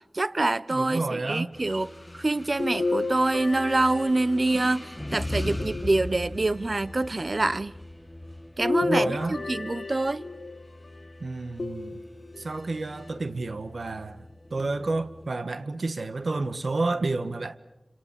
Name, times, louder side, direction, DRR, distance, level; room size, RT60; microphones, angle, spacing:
voice 1, 0.1-1.9 2.2-7.7 8.6-10.2, right 2 dB, 50° right, 0.9 m, -26 dB
voice 2, 0.7-1.5 8.8-9.4 11.2-12.0 12.4-17.6, right 3 dB, 80° right, 1.6 m, -30 dB
sound 1, 1.5-15.3, left 1 dB, 15° left, 1.6 m, -40 dB
sound 2, 2.6-4.9 5.6-6.6 8.6-10.7 11.6-12.5 13.1-13.2 14.6-14.7, left 3 dB, 75° left, 1.3 m, -32 dB
29.0 x 27.0 x 7.5 m
wide cardioid pair, 55°, 0 cm